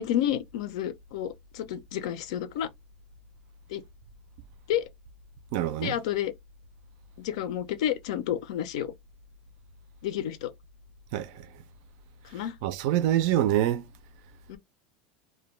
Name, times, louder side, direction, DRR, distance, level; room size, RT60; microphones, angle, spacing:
voice 1, 0.0-2.7 3.7-3.8 4.7-4.8 5.8-6.3 7.2-8.9 10.0-10.5 12.3-12.5 14.5-14.6, left 10 dB, 80° left, 0.5 m, -30 dB
voice 2, 5.5-6.0 11.1-11.5 12.6-13.8, right 12 dB, 60° right, 0.4 m, -25 dB
2.2 x 2.2 x 3.1 m
supercardioid pair, 160°, 3 cm